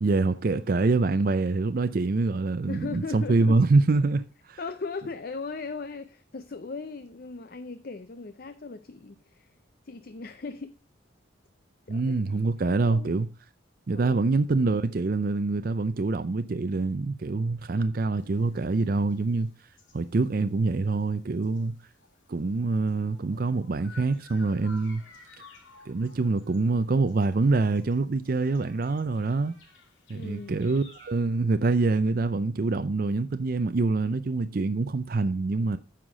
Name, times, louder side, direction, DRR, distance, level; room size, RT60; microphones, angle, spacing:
voice 1, 0.0-4.6 11.9-13.3 13.9-19.5 19.9-21.7 22.3-25.0 25.9-29.5 30.1-35.8, right 3 dB, 45° right, 0.4 m, -25 dB
voice 2, 2.7-3.6 4.6-9.5 9.9-10.7 11.9-12.2 12.6-13.1 13.9-14.3 30.1-30.7, left 4 dB, 50° left, 0.5 m, -38 dB
sound 1, 18.2-31.2, left 4 dB, 80° left, 2.5 m, -55 dB
9.6 x 5.8 x 5.0 m
head